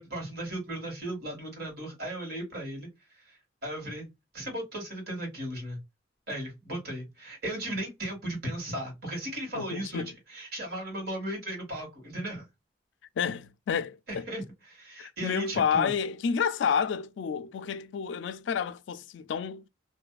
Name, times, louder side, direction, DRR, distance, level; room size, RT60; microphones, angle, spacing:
voice 1, 0.0-2.9 3.3-4.1 4.3-5.8 6.3-12.5 14.1-15.9, right 1 dB, 60° right, 1.7 m, -36 dB
voice 2, 9.6-10.1 13.2-14.3 15.0-19.7, left 7 dB, 85° left, 0.3 m, -30 dB
2.6 x 2.3 x 2.2 m
head